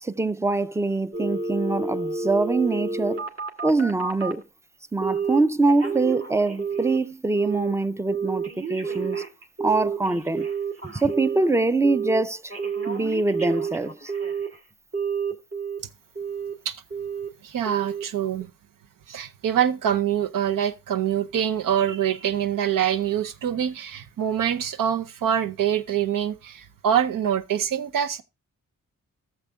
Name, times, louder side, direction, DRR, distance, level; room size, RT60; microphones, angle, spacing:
voice 1, 0.0-3.3 3.6-4.4 4.9-9.2 9.6-10.5 10.8-12.5 12.9-14.1, right 3 dB, 10° right, 0.5 m, -24 dB
Telephone, 1.1-4.4 5.0-5.4 5.7-7.0 7.3-7.7 8.1-11.5 11.8-12.2 12.5-14.6 14.9-15.8 16.2-16.5 16.9-17.3 17.7-18.0 18.4-18.5, right 5 dB, 45° right, 2.4 m, -30 dB
voice 2, 17.4-18.5 19.1-28.2, right 9 dB, 80° right, 0.8 m, -25 dB
13.5 x 7.3 x 2.3 m
cardioid pair, 65°, 33 cm